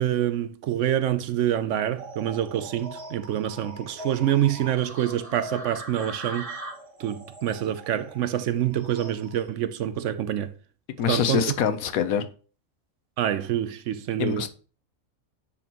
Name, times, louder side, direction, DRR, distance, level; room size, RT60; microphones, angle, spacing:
voice 1, 0.0-6.5 7.0-10.5 11.1-11.4 13.2-14.5, right 11 dB, 70° right, 0.9 m, -26 dB
sound 1, 1.9-9.5, right 1 dB, 25° right, 1.7 m, -41 dB
voice 2, 11.0-12.3 14.2-14.5, left 8 dB, 90° left, 1.2 m, -24 dB
9.8 x 4.3 x 2.9 m
omnidirectional pair, 1.4 m